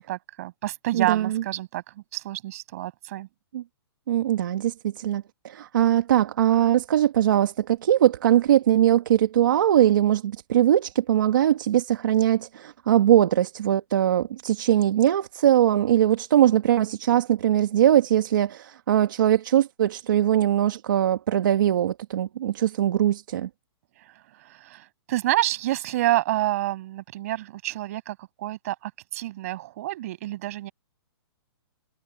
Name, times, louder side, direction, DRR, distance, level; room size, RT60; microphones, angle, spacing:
voice 1, 0.1-3.3 24.0-30.7, right 15 dB, 35° right, 6.4 m, -29 dB
voice 2, 0.9-1.4 3.5-3.6 4.1-23.5, right 11 dB, 50° right, 1.8 m, -21 dB
hypercardioid pair, 175°, 14 cm